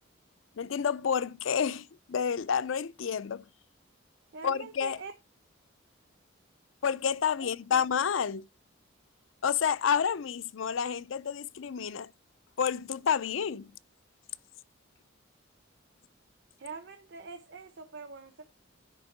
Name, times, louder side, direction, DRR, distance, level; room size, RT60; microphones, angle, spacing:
voice 1, 0.6-3.5 4.4-5.0 6.8-8.4 9.4-12.1 12.6-13.7, left 7 dB, 70° left, 0.5 m, -29 dB
voice 2, 4.3-5.1 7.4-7.8 16.6-18.4, right 4 dB, 60° right, 0.9 m, -44 dB
10.5 x 3.7 x 6.6 m
head